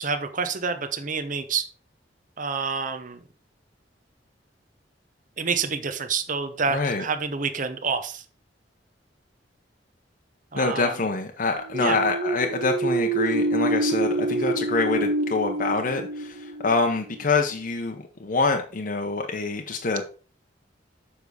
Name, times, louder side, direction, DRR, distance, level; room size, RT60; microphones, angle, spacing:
voice 1, 0.0-1.6 2.4-3.2 5.4-8.2 10.5-10.9 11.8-12.0, right 5 dB, 45° right, 9 dB, 0.9 m, -28 dB
voice 2, 6.7-7.0 10.5-20.0, left 3 dB, 50° left, 3 dB, 0.7 m, -26 dB
sound 1, 11.6-17.2, right 2 dB, 75° right, 1.0 m, -26 dB
7.0 x 5.4 x 4.8 m, 0.38 s
head